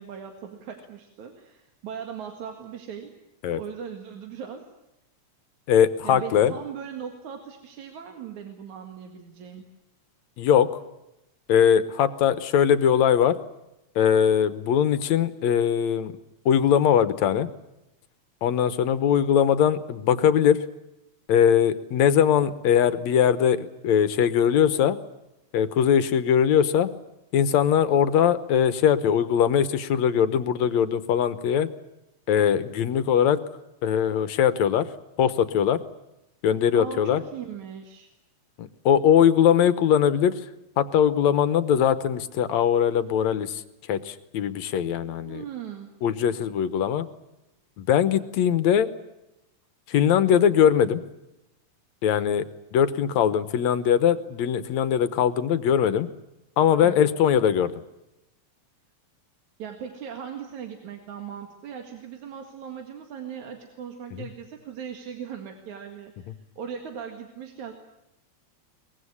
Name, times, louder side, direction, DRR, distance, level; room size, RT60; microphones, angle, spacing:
voice 1, 0.0-3.1 3.6-4.7 6.0-9.7 36.7-38.1 45.2-45.9 56.8-57.1 59.6-67.7, right 7 dB, 80° right, 4 dB, 3.3 m, -39 dB
voice 2, 5.7-6.5 10.4-10.7 11.5-13.4 14.0-16.1 16.5-17.5 18.4-20.6 21.3-25.0 25.5-26.9 27.3-31.7 32.3-33.4 33.8-34.9 35.2-35.8 36.4-37.2 38.6-40.3 40.8-43.6 43.9-45.4 46.0-47.1 47.8-48.9 49.9-51.0 52.0-52.4 52.7-56.1 56.6-57.7 64.1-64.2, left 8 dB, 75° left, 13 dB, 2.3 m, -21 dB
23.0 x 20.5 x 9.7 m, 0.92 s
omnidirectional pair, 3.3 m